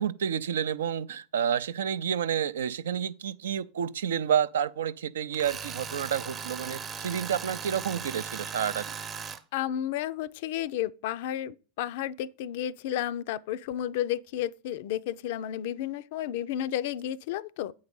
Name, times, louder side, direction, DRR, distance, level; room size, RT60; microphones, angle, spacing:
voice 1, 0.0-8.9, right 8 dB, 70° right, 0.4 m, -29 dB
Tools, 5.3-9.4, right 6 dB, 30° right, 0.8 m, -38 dB
voice 2, 9.5-17.7, left 11 dB, 55° left, 0.4 m, -32 dB
8.4 x 4.7 x 5.2 m
figure-of-eight pair, 90°, 0 cm